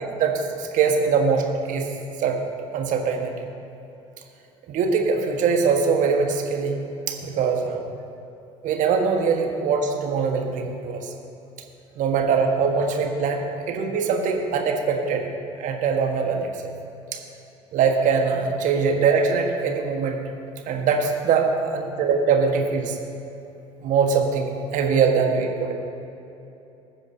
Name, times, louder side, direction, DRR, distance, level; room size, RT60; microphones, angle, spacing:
voice 1, 0.0-1.9 2.2-2.4 2.7-3.3 4.7-6.8 7.1-7.8 8.6-11.1 12.0-15.3 15.6-16.7 17.1-17.2 17.7-20.2 20.7-23.0 23.8-25.7, right 5 dB, 55° right, 3 dB, 1.6 m, -22 dB
20.0 x 9.8 x 2.9 m, 2.9 s
figure-of-eight pair, 60°, 16 cm